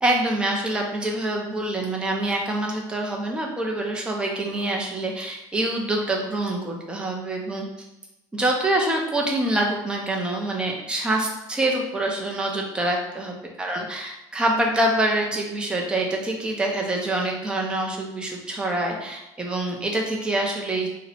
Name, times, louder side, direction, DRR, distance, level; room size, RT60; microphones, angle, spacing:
voice 1, 0.0-7.6 8.3-20.9, right 1 dB, 10° right, 0 dB, 0.4 m, -25 dB
2.8 x 2.1 x 4.0 m, 0.97 s
cardioid pair, 170°, 9 cm